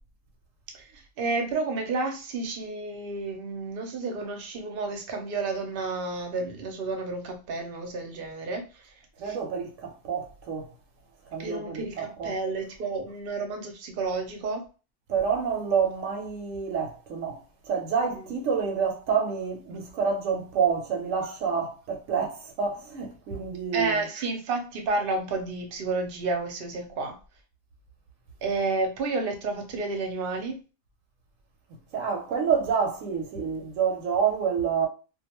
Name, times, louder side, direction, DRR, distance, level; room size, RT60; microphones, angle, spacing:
voice 1, 1.2-8.6 9.2-9.4 11.4-14.6 23.7-27.1 28.4-30.6, right 3 dB, 55° right, 0.7 m, -31 dB
voice 2, 9.2-10.7 11.3-12.4 15.1-24.0 31.9-34.9, right 6 dB, 80° right, 1.0 m, -28 dB
2.5 x 2.2 x 2.9 m
omnidirectional pair, 1.4 m